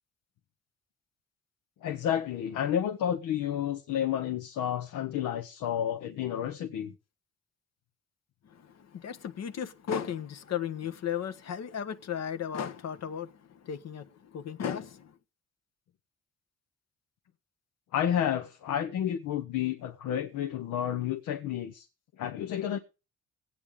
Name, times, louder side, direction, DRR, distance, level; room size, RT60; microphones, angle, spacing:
voice 1, 1.8-6.9 17.9-21.9 22.2-22.8, left 10 dB, 80° left, 1.0 m, -31 dB
voice 2, 8.4-15.1, left 8 dB, 60° left, 1.1 m, -35 dB
19.5 x 8.7 x 3.5 m
cardioid pair, 90°, 30 cm